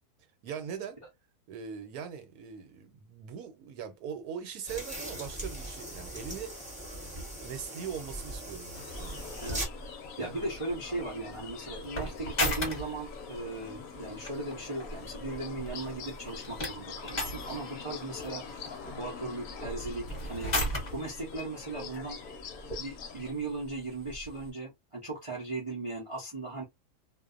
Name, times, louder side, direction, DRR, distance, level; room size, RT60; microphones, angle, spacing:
voice 1, 0.4-1.0 1.5-6.6 7.0-9.2 10.2-10.4, right 7 dB, 75° right, 1.1 m, -41 dB
sound 1, 4.7-9.6, right 1 dB, 5° right, 0.7 m, -40 dB
sound 2, 8.7-23.3, left 6 dB, 70° left, 1.0 m, -45 dB
sound 3, 9.0-24.5, left 1 dB, 30° left, 1.0 m, -39 dB
voice 2, 9.4-9.9 10.2-18.4 18.9-20.5 20.9-22.2 22.7-26.6, right 2 dB, 40° right, 0.4 m, -37 dB
2.5 x 2.2 x 2.4 m
omnidirectional pair, 1.7 m